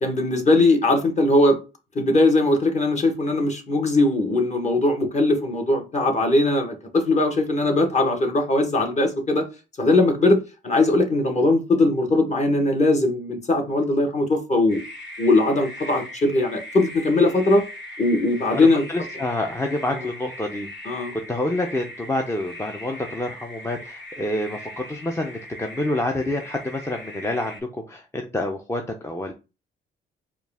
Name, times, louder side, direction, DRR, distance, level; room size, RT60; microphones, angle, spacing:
voice 1, 0.0-1.6 1.9-9.4 9.8-10.4 10.6-14.8 15.2-17.6 18.0-18.8 19.9-20.1 20.8-21.1, left 2 dB, 35° left, 1.2 m, -20 dB
sound 1, 14.7-27.6, left 1 dB, 60° left, 2.2 m, -40 dB
voice 2, 18.5-20.7 21.1-29.3, left 1 dB, 15° left, 0.5 m, -28 dB
4.5 x 2.3 x 3.4 m
cardioid pair, 90°, 20 cm